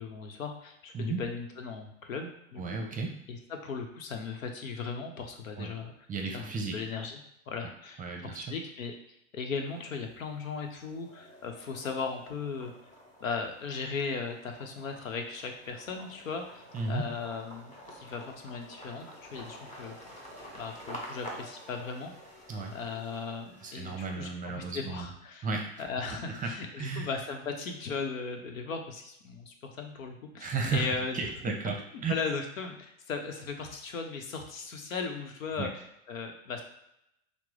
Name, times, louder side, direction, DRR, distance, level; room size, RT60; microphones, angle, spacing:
voice 1, 0.0-2.6 3.3-5.9 6.3-7.2 7.5-8.9 9.3-12.7 13.2-20.0 20.5-22.1 22.7-25.5 25.8-31.2 32.1-36.6, left 5 dB, 85° left, 4 dB, 0.9 m, -37 dB
voice 2, 2.6-3.2 5.5-5.7 6.1-7.0 7.6-7.7 8.0-8.5 16.7-17.0 22.5-22.7 23.6-25.1 25.4-25.8 26.1-27.1 30.4-31.8 32.0-32.1 35.6-35.7, right 4 dB, 20° right, 2 dB, 0.7 m, -34 dB
sound 1, 9.7-10.3 10.7-24.2, equal, 20° left, 1.1 m, -48 dB
5.8 x 2.1 x 3.2 m, 0.80 s
hypercardioid pair, 100°, 39 cm